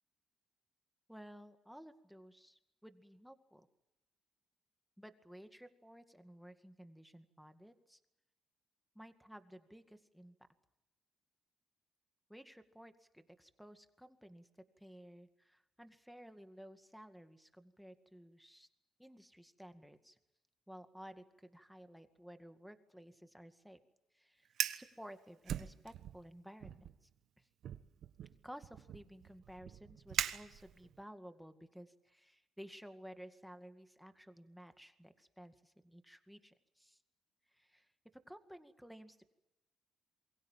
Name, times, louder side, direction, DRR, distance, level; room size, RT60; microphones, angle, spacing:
voice 1, 1.1-3.7 5.0-8.0 9.0-10.3 12.3-14.5 14.8-18.7 19.0-20.2 20.7-23.8 24.1-27.1 27.4-27.5 28.4-37.0 37.5-37.9 38.3-39.3, equal, ahead, 8 dB, 2.1 m, -55 dB
Fire, 24.5-24.9 25.5-26.2 26.6-26.9 27.6-31.0, right 10 dB, 70° right, 1.4 m, -41 dB
27.5 x 23.0 x 7.5 m, 0.92 s
cardioid pair, 90°, 0 cm